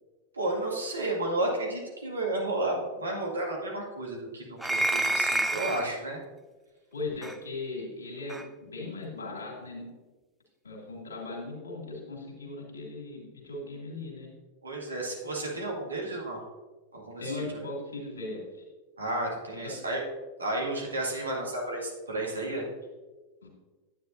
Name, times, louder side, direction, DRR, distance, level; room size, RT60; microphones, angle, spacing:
voice 1, 0.3-6.2 14.6-16.4 16.9-17.5 19.0-20.0 20.4-22.6, right 2 dB, 75° right, -2 dB, 2.0 m, -32 dB
sound 1, 4.6-5.9 7.2-7.4 8.3-8.5, right 1 dB, 5° right, 0.4 m, -28 dB
voice 2, 6.9-9.9 10.6-14.3 17.2-18.4 19.5-19.7 23.4-23.5, left 2 dB, 70° left, -2 dB, 2.5 m, -38 dB
9.7 x 8.8 x 2.6 m, 1.3 s
figure-of-eight pair, 90°, 0 cm